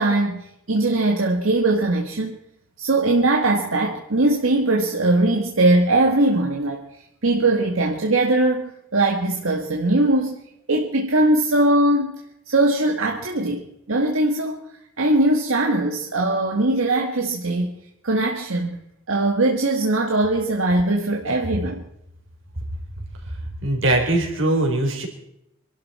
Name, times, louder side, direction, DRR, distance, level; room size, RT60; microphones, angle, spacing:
voice 1, 0.0-2.4 2.8-6.8 7.2-10.4 10.7-12.2 12.5-13.6 13.9-14.6 15.0-17.8 18.0-18.8 19.1-21.8, right 2 dB, 90° right, 1.7 m, -20 dB
voice 2, 23.6-25.1, right 2 dB, 70° right, 4.0 m, -21 dB
26.0 x 12.5 x 4.3 m
head